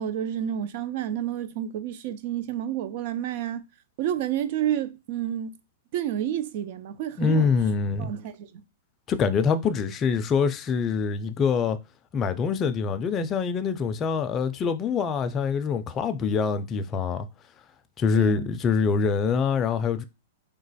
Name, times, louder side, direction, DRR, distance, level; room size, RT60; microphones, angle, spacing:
voice 1, 0.0-3.6 4.0-5.6 5.9-7.5 8.0-8.5 18.2-18.5, right 10 dB, 50° right, 0.4 m, -30 dB
voice 2, 7.2-8.1 9.1-11.8 12.1-17.3 18.0-20.0, left 5 dB, 20° left, 0.4 m, -25 dB
3.0 x 2.1 x 4.0 m
hypercardioid pair, 150°, 0 cm